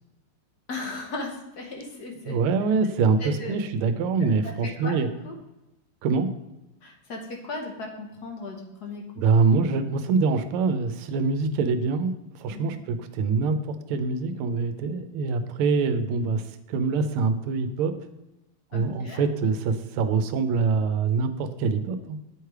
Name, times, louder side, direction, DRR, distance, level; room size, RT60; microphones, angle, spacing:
voice 1, 0.7-2.4 3.2-3.6 4.2-5.0 5.2-5.4 6.8-9.1 12.5-12.7 18.7-19.2, left 2 dB, 55° left, 2 dB, 1.2 m, -37 dB
voice 2, 2.3-5.1 6.0-6.3 9.2-12.1 12.4-16.4 16.7-17.9 18.7-22.2, right 4 dB, 85° right, 9 dB, 1.5 m, -24 dB
8.3 x 3.2 x 4.6 m, 0.96 s
omnidirectional pair, 2.3 m